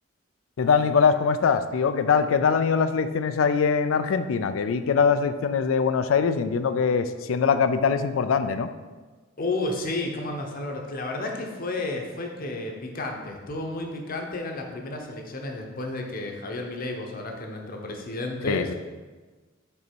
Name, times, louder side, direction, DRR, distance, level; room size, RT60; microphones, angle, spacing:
voice 1, 0.6-8.7 18.5-18.7, left 6 dB, 85° left, 11 dB, 0.4 m, -22 dB
voice 2, 9.4-18.7, left 2 dB, 45° left, 2 dB, 0.8 m, -32 dB
5.4 x 4.0 x 4.5 m, 1.3 s
head